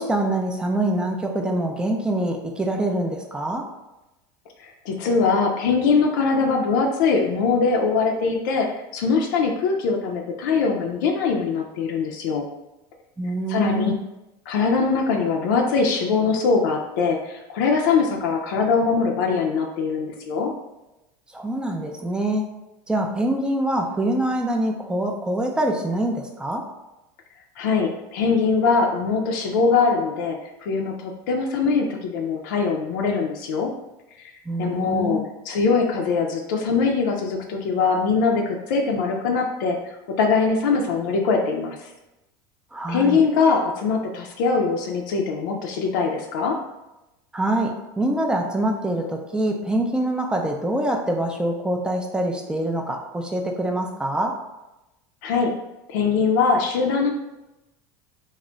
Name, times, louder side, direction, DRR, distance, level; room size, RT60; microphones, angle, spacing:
voice 1, 0.0-3.7 13.2-14.0 21.3-22.5 22.9-26.6 34.5-35.2 42.7-43.2 47.3-54.3, right 1 dB, 10° right, 2 dB, 0.4 m, -25 dB
voice 2, 4.6-8.7 8.9-12.5 13.5-13.9 14.5-20.5 27.6-33.7 34.2-34.3 34.6-39.8 40.2-41.8 42.9-46.6 55.2-55.5 55.9-57.1, left 4 dB, 75° left, 2 dB, 0.4 m, -22 dB
2.2 x 2.0 x 3.8 m, 0.97 s
supercardioid pair, 110°, 10 cm